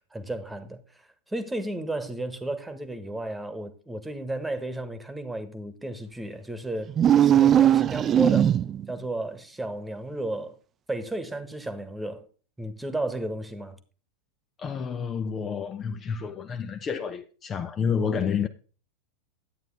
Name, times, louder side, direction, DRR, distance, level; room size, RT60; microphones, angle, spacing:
voice 1, 0.1-6.9 7.2-8.6 8.9-10.6 10.9-12.3 12.6-13.8, right 1 dB, 5° right, 1.5 m, -33 dB
sound 1, 6.9-8.9, right 10 dB, 25° right, 0.4 m, -19 dB
voice 2, 14.6-18.5, left 6 dB, 25° left, 0.7 m, -29 dB
11.5 x 9.0 x 3.4 m
figure-of-eight pair, 90°, 0 cm